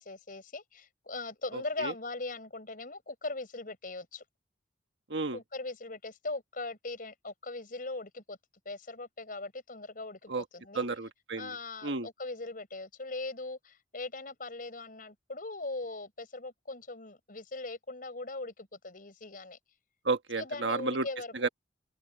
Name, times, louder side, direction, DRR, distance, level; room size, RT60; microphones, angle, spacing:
voice 1, 0.0-4.2 5.3-8.4 8.7-10.9 11.4-19.6 20.4-21.3, left 2 dB, 50° left, 5.2 m, -40 dB
voice 2, 1.5-1.9 5.1-5.4 10.3-10.4 10.7-11.5 11.8-12.1 20.0-21.1 21.3-21.5, right 3 dB, 90° right, 1.6 m, -32 dB
open air
head